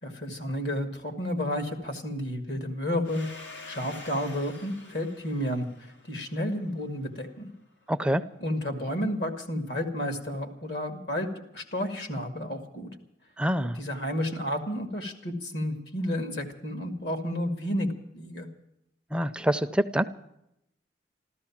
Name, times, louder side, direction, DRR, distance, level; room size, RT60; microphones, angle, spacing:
voice 1, 0.0-3.3 3.7-5.7 6.1-7.5 8.4-11.3 11.5-12.9 13.6-17.9 18.1-18.5, left 1 dB, 65° left, 6 dB, 2.2 m, -31 dB
Domestic sounds home sounds, 3.0-7.5, left 3 dB, 90° left, 2.1 m, -47 dB
voice 2, 7.9-8.2 13.4-13.8 19.1-20.1, equal, 5° right, 10 dB, 0.5 m, -26 dB
14.0 x 14.0 x 7.3 m, 0.81 s
head